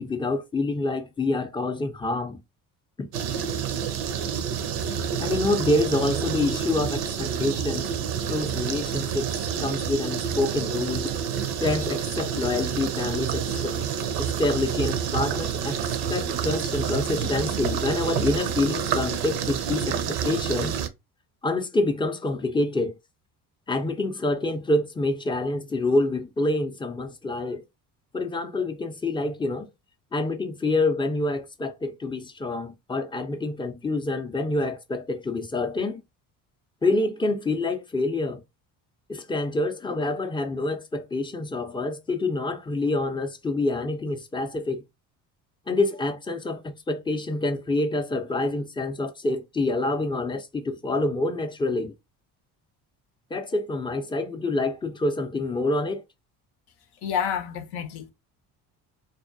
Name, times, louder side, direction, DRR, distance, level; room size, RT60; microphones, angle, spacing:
voice 1, 0.0-2.4 3.0-3.1 5.2-7.9 8.3-11.1 11.6-13.8 14.2-15.8 16.1-20.8 21.4-23.0 23.7-27.6 28.1-29.7 30.1-36.0 36.8-38.4 39.1-44.8 45.7-51.9 53.3-56.0, left 2 dB, 10° left, 0.5 m, -27 dB
sound 1, 3.1-20.9, right 8 dB, 60° right, 0.6 m, -28 dB
voice 2, 57.0-58.1, left 8 dB, 55° left, 0.7 m, -29 dB
2.3 x 2.2 x 2.5 m
hypercardioid pair, 55°, 47 cm